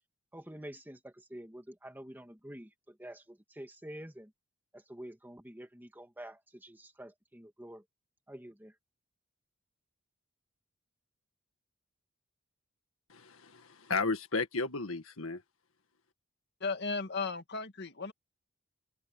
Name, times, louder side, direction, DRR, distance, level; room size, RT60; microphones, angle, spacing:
voice 1, 0.3-4.3 4.7-7.8 8.3-8.8, right 1 dB, 10° right, 2.0 m, -48 dB
voice 2, 13.1-15.4, left 4 dB, 80° left, 1.8 m, -34 dB
voice 3, 16.6-18.1, left 4 dB, 55° left, 2.1 m, -35 dB
open air
head